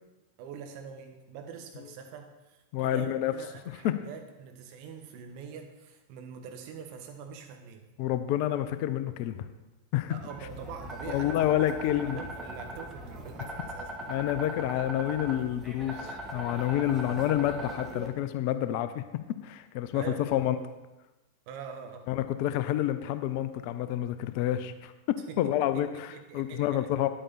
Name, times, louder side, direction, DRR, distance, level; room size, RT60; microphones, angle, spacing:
voice 1, 0.4-7.9 10.1-11.6 12.1-13.9 19.9-20.4 21.5-22.1 25.3-26.9, right 6 dB, 45° right, 4 dB, 1.4 m, -44 dB
voice 2, 2.7-3.3 3.7-4.0 8.0-9.4 9.9-10.1 11.1-12.2 14.1-19.0 19.4-20.6 22.1-24.9 25.4-27.1, left 12 dB, 45° left, 11 dB, 0.6 m, -28 dB
sound 1, 10.3-18.1, equal, 10° right, 1.7 m, -40 dB
9.8 x 8.7 x 4.2 m, 1.1 s
figure-of-eight pair, 90°, 0 cm